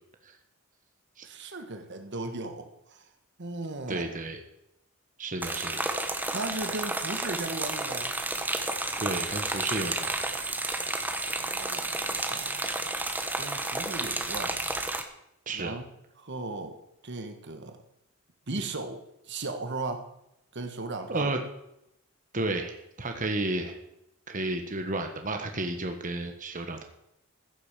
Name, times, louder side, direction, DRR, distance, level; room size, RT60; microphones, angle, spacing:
voice 1, 1.2-3.1 3.4-4.1 6.3-8.1 11.4-12.7 13.4-14.6 15.5-15.9 16.2-16.8 17.0-17.8 18.5-20.1 20.5-21.4, right 2 dB, 55° right, 7 dB, 1.5 m, -37 dB
voice 2, 3.9-4.4 5.2-5.8 9.0-10.1 15.5-15.7 21.1-21.4 22.3-23.8 24.3-26.8, right 2 dB, 40° right, 5 dB, 1.5 m, -32 dB
sound 1, 5.4-15.0, right 2 dB, 10° right, 1.2 m, -31 dB
15.5 x 8.0 x 7.4 m, 0.82 s
head